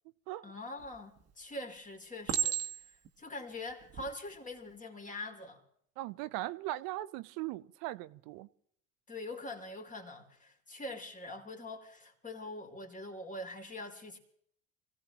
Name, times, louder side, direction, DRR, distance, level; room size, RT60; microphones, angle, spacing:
voice 1, 0.4-2.8 3.2-5.6 9.1-14.2, left 2 dB, 20° left, 2.7 m, -44 dB
Chink clink, 0.8-1.3 2.3-3.1 3.8-4.1, right 10 dB, 40° right, 1.5 m, -33 dB
voice 2, 6.0-8.5, right 16 dB, 65° right, 0.7 m, -39 dB
26.0 x 16.0 x 2.9 m
hypercardioid pair, 75°, 38 cm